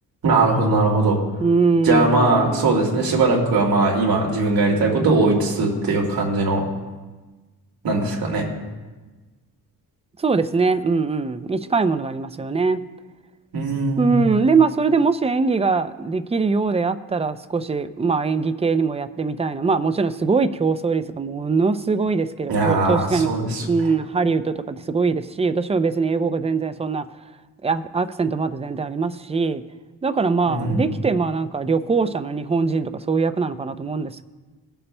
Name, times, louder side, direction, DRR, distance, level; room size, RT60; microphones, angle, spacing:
voice 1, 0.2-1.2 1.8-6.6 7.8-8.5 13.5-14.1 22.5-23.6 30.5-30.9, right 3 dB, 65° right, -1 dB, 2.2 m, -20 dB
voice 2, 1.4-2.7 10.2-12.8 14.0-27.0 27.6-29.6 30.0-34.2, right 4 dB, 15° right, 11 dB, 0.4 m, -22 dB
20.5 x 6.8 x 2.2 m, 1.3 s
cardioid pair, 90°, 38 cm